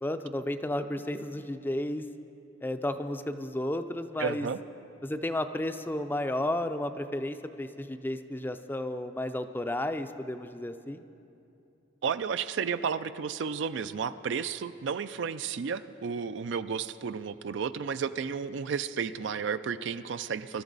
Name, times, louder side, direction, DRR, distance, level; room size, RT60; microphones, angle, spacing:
voice 1, 0.0-2.0 2.6-4.5 5.0-11.0, left 1 dB, 10° left, 9 dB, 0.4 m, -32 dB
voice 2, 4.2-4.6 12.0-20.6, right 6 dB, 65° right, 13 dB, 0.4 m, -32 dB
24.0 x 13.0 x 4.0 m, 2.7 s
head